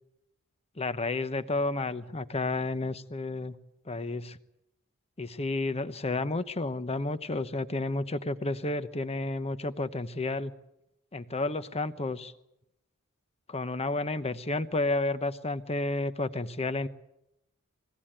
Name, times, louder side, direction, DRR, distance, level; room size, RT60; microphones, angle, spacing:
voice 1, 0.8-3.6 3.8-4.4 5.2-10.5 11.1-12.3 13.5-16.9, left 2 dB, 30° left, 12 dB, 1.0 m, -31 dB
22.0 x 17.0 x 8.9 m, 0.86 s
head